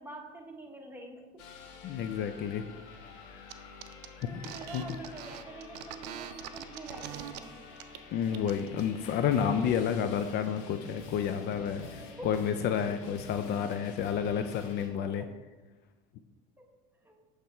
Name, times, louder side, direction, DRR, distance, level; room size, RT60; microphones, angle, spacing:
voice 1, 0.0-1.4 4.2-7.6 12.0-12.4 15.0-15.3 16.6-16.7 17.0-17.2, right 2 dB, 10° right, 1 dB, 1.1 m, -46 dB
sound 1, 1.4-14.9, left 4 dB, 65° left, 1.0 m, -48 dB
voice 2, 1.8-2.6 3.3-3.8 4.3-4.4 4.7-4.8 8.1-15.2, left 8 dB, 50° left, 9 dB, 0.4 m, -30 dB
sound 2, 3.5-3.6 3.8-7.4 7.8-8.0 8.3-8.8, right 12 dB, 75° right, 0.4 m, -43 dB
7.3 x 3.3 x 4.3 m, 1.2 s
supercardioid pair, 90°, 21 cm